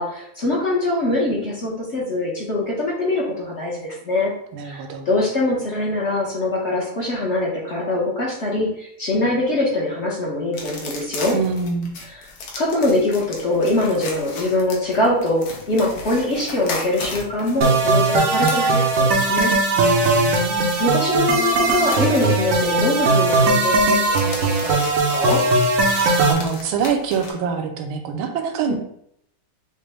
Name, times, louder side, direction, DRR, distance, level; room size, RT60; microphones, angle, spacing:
voice 1, 0.0-4.3 4.6-11.3 12.1-12.3 12.6-19.5 20.1-20.4 20.8-25.4 28.7-28.8, left 2 dB, 50° left, -4 dB, 0.8 m, -23 dB
voice 2, 4.5-5.1 11.3-11.9 19.8-20.7 26.3-28.7, right 6 dB, 80° right, 4 dB, 1.5 m, -25 dB
sound 1, 10.5-27.3, left 3 dB, 75° left, 1.7 m, -36 dB
sound 2, 17.6-26.3, right 3 dB, 65° right, 0.8 m, -19 dB
6.4 x 2.1 x 3.3 m, 0.72 s
omnidirectional pair, 2.3 m